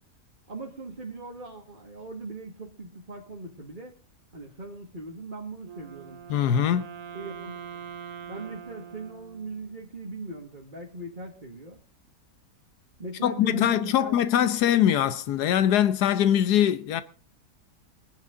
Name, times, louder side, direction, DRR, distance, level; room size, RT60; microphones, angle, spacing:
voice 1, 0.5-3.9 4.3-6.2 7.1-7.9 8.3-11.8 13.0-14.2, right 2 dB, 30° right, 1.9 m, -40 dB
Wind instrument woodwind instrument, 5.6-9.9, right 7 dB, 60° right, 1.3 m, -43 dB
voice 2, 6.3-6.9 13.2-17.0, left 10 dB, 85° left, 1.4 m, -22 dB
22.0 x 10.5 x 3.8 m
omnidirectional pair, 1.7 m